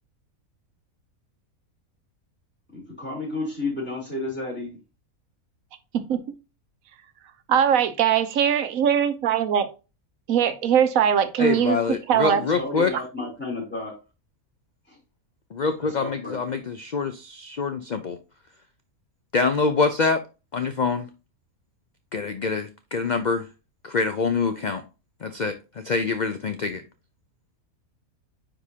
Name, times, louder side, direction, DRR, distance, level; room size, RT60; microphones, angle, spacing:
voice 1, 2.7-4.8 12.3-13.9 14.9-15.0 15.8-16.4, left 2 dB, 5° left, 3.4 m, -32 dB
voice 2, 7.5-9.7 10.3-11.8 12.1-12.4, right 8 dB, 70° right, 1.2 m, -21 dB
voice 3, 11.4-12.9 15.5-18.2 19.3-20.2 20.5-21.1 22.1-23.4 23.8-24.8 25.2-26.8, left 4 dB, 85° left, 0.4 m, -25 dB
9.6 x 3.8 x 2.8 m
omnidirectional pair, 1.5 m